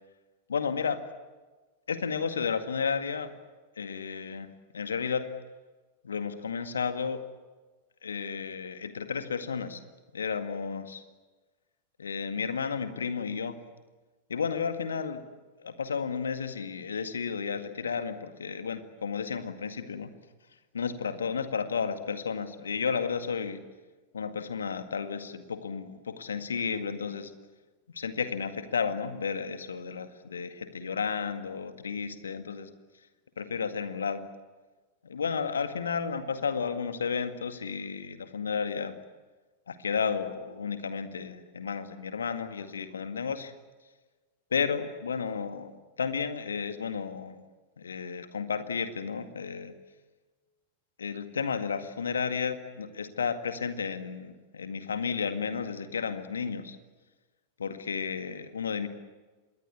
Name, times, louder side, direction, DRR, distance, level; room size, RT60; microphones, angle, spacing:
voice 1, 0.5-1.0 1.9-3.3 3.8-5.3 6.0-7.2 8.0-9.8 10.1-11.0 12.0-13.6 14.3-15.2 15.6-20.1 20.7-23.6 24.1-27.3 27.9-32.7 33.4-34.2 35.0-39.0 39.7-43.5 44.5-47.4 47.8-49.7 51.0-56.8 57.6-58.9, left 6 dB, 70° left, 8 dB, 2.0 m, -32 dB
26.5 x 21.5 x 8.5 m, 1.3 s
figure-of-eight pair, 90°, 0 cm